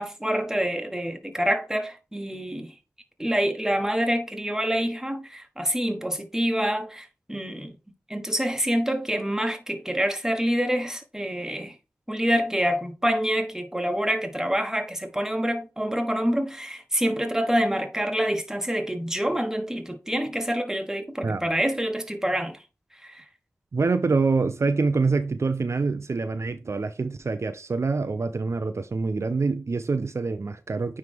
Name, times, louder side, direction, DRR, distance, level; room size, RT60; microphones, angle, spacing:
voice 1, 0.0-2.7 3.2-7.8 8.1-11.8 12.1-22.6 23.0-23.2, equal, 10° right, 1.3 m, -26 dB
voice 2, 23.7-31.0, right 4 dB, 60° right, 0.5 m, -25 dB
9.4 x 3.2 x 3.5 m
wide cardioid pair, 55°, 5 cm